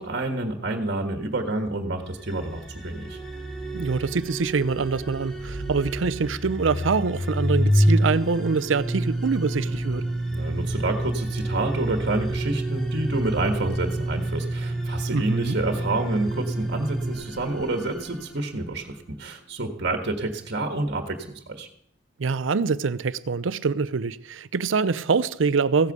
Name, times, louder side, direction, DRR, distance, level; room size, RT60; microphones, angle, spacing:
voice 1, 0.0-3.2 10.3-21.7, right 2 dB, 60° right, 1.6 m, -28 dB
sound 1, 2.1-19.2, right 3 dB, 5° left, 2.5 m, -38 dB
sound 2, 3.2-3.3 3.5-3.6 5.1-17.1, right 1 dB, 70° left, 7.4 m, -27 dB
voice 2, 3.7-10.0 15.1-15.6 22.2-25.9, right 4 dB, 90° right, 0.6 m, -25 dB
15.5 x 8.4 x 6.7 m
head